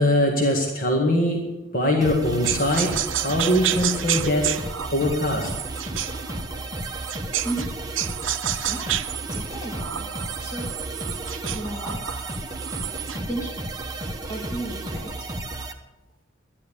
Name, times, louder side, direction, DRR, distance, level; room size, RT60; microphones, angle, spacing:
voice 1, 0.0-4.6 4.9-5.5, left 1 dB, 45° left, 0 dB, 2.0 m, -22 dB
sound 1, 2.0-15.7, right 2 dB, 20° right, 1.2 m, -33 dB
sound 2, 2.4-7.7 7.9-13.3, right 11 dB, 75° right, 0.6 m, -30 dB
voice 2, 7.4-7.8 8.5-9.0 9.3-10.1 10.4-10.8 11.3-12.1 13.2-13.7 14.3-15.3, right 1 dB, 15° left, -2 dB, 2.4 m, -34 dB
11.5 x 11.0 x 8.5 m, 0.98 s
head